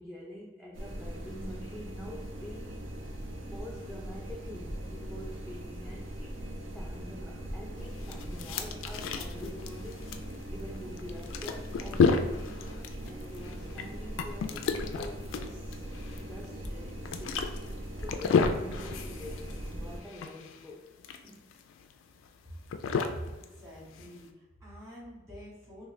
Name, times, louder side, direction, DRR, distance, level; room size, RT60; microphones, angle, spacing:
voice 1, 0.0-2.9 3.1-3.2 3.5-6.4 6.7-10.2 10.5-12.6 13.0-16.0 16.3-17.5 18.0-20.9 21.2-21.4, left 1 dB, ahead, -3 dB, 0.3 m, -46 dB
sound 1, 0.7-20.0, right 1 dB, 80° right, 0.6 m, -40 dB
sound 2, 7.8-24.3, left 5 dB, 80° left, 0.3 m, -32 dB
voice 2, 23.1-25.9, equal, 15° right, -7 dB, 1.2 m, -46 dB
3.6 x 2.5 x 3.1 m, 1.1 s
head